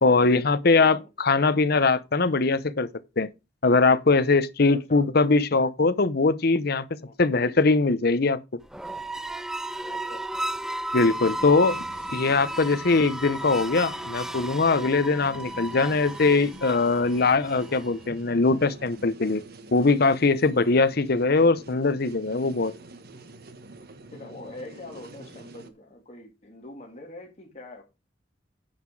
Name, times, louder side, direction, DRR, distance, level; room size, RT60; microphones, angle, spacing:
voice 1, 0.0-2.9 3.2-3.3 3.6-6.8 7.2-8.4 10.9-11.8 12.1-19.4 19.7-22.7, left 3 dB, 60° left, 0.9 m, -21 dB
voice 2, 0.7-1.1 4.7-5.0 7.0-7.1 9.8-10.3 11.4-11.5 15.2-15.4 24.1-27.8, left 2 dB, 40° left, 3.0 m, -44 dB
sound 1, 8.6-18.0, right 1 dB, 5° right, 0.4 m, -34 dB
sound 2, 11.0-25.7, right 2 dB, 60° right, 1.3 m, -46 dB
10.0 x 5.8 x 4.8 m
head